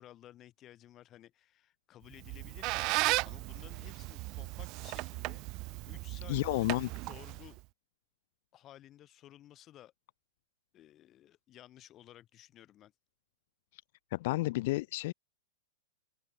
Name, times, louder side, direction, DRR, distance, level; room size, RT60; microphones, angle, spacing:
voice 1, 0.0-5.4 5.8-7.6 8.5-9.9 10.7-12.9, left 13 dB, 30° left, 7.9 m, -55 dB
Squeak, 2.1-7.6, right 24 dB, 40° right, 0.5 m, -36 dB
voice 2, 6.3-6.9 13.7-13.8 14.1-15.1, left 19 dB, 55° left, 0.6 m, -31 dB
open air
hypercardioid pair, 125°, 0 cm